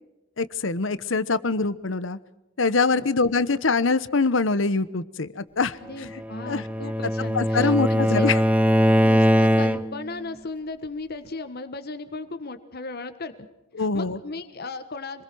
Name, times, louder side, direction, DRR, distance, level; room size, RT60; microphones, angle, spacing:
voice 1, 0.4-2.2 2.6-5.8 6.5-6.6 7.3-8.4 13.7-14.2, left 4 dB, 75° left, 16 dB, 1.0 m, -24 dB
voice 2, 5.8-8.3 9.0-13.5 13.8-15.2, left 3 dB, 55° left, 9 dB, 1.5 m, -36 dB
Bowed string instrument, 6.2-10.1, equal, 5° right, 0.8 m, -21 dB
26.0 x 21.5 x 6.3 m, 0.99 s
head